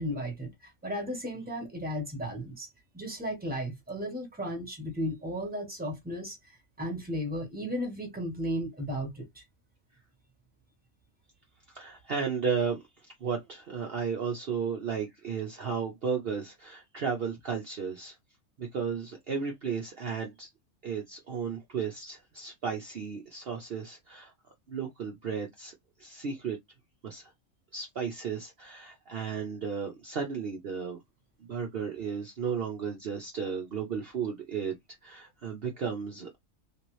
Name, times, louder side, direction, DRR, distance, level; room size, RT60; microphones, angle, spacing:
voice 1, 0.0-2.7 2.9-6.4 6.8-9.4, equal, 5° right, 1.2 m, -35 dB
voice 2, 11.7-12.8 13.2-18.2 18.6-20.5 20.8-24.3 24.7-25.7 26.0-26.6 27.0-27.3 27.7-31.0 31.4-34.7 35.0-36.4, right 6 dB, 50° right, 0.9 m, -34 dB
3.4 x 2.8 x 3.1 m
omnidirectional pair, 1.4 m